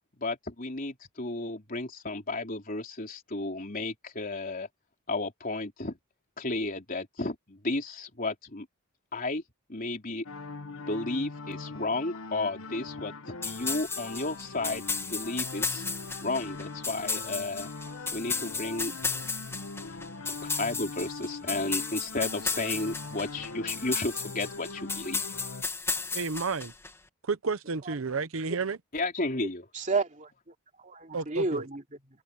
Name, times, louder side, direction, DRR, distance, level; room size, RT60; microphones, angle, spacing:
voice 1, 0.2-4.7 5.1-6.0 6.4-8.7 9.1-9.4 9.7-10.2 10.8-14.8 15.1-15.8 16.2-17.7 18.1-18.9 20.4-25.2 28.9-29.6, left 2 dB, 40° left, 3.8 m, -33 dB
sound 1, 10.2-25.6, left 3 dB, 70° left, 1.0 m, -42 dB
sound 2, 13.4-26.9, left 4 dB, 10° left, 0.8 m, -34 dB
voice 2, 26.1-26.7 27.2-28.8 31.1-31.7, right 4 dB, 65° right, 0.8 m, -31 dB
voice 3, 29.7-32.2, right 3 dB, 35° right, 2.7 m, -32 dB
head